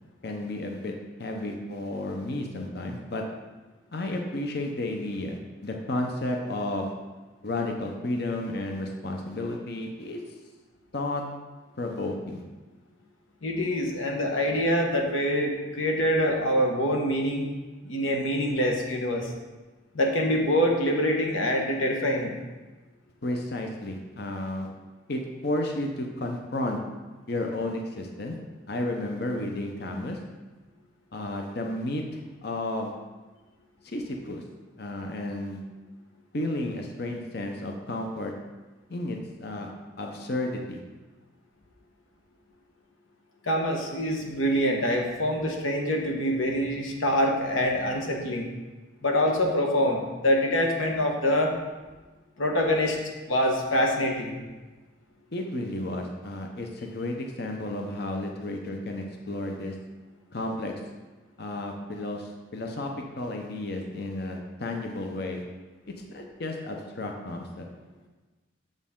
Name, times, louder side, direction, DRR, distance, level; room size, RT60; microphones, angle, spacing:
voice 1, 0.2-0.9 1.2-3.2 3.9-6.9 7.4-10.2 10.9-11.2 11.8-12.4 23.2-24.7 25.1-26.8 27.3-28.3 28.7-30.2 31.1-32.9 33.8-34.4 34.8-35.6 36.3-38.3 38.9-39.7 40.0-40.8 55.3-59.8 60.3-60.7 61.4-65.4 66.1-67.7, left 1 dB, 50° left, 2 dB, 0.7 m, -32 dB
voice 2, 13.4-17.4 17.8-19.3 19.9-22.4 43.4-48.5 49.0-51.5 52.4-54.4, equal, 80° left, 1 dB, 1.2 m, -25 dB
7.3 x 6.6 x 3.7 m, 1.2 s
head